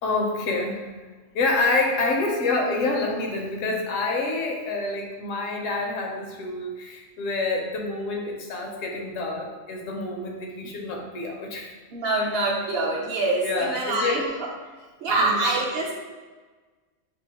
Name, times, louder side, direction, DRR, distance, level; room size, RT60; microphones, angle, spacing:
voice 1, 0.0-0.9 1.3-11.7 13.4-14.2 15.2-15.4, left 3 dB, 80° left, 1 dB, 1.0 m, -27 dB
voice 2, 11.9-14.5 15.0-15.9, right 2 dB, 60° right, -2 dB, 0.7 m, -25 dB
2.8 x 2.4 x 3.9 m, 1.3 s
omnidirectional pair, 1.3 m